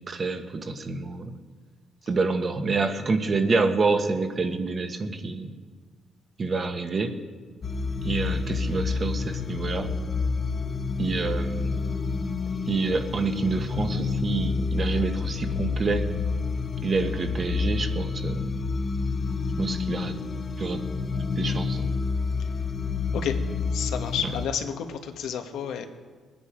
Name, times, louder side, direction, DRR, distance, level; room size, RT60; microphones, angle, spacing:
voice 1, 0.1-1.3 2.1-5.5 6.4-7.2 8.0-9.9 11.0-11.8 12.7-16.0 16.8-18.5 19.6-20.2 20.6-20.8 21.4-21.9 24.2-24.3, right 4 dB, 40° right, 6 dB, 1.4 m, -27 dB
sound 1, 7.6-24.5, left 4 dB, 40° left, 1.1 m, -29 dB
voice 2, 23.7-25.9, left 8 dB, 80° left, 5 dB, 1.3 m, -30 dB
20.5 x 9.5 x 5.0 m, 1.5 s
cardioid pair, 90°, 0 cm